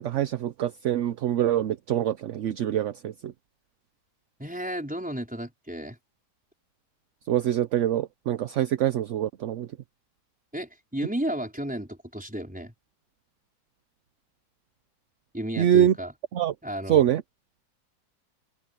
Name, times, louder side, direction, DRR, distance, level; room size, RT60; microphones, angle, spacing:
voice 1, 0.0-3.3 7.3-9.7 15.6-15.9 16.3-16.5 16.9-17.2, right 11 dB, 60° right, 0.8 m, -24 dB
voice 2, 4.4-6.0 10.5-12.7 15.3-16.1 16.6-17.0, right 1 dB, 5° right, 4.4 m, -33 dB
omnidirectional pair, 1.8 m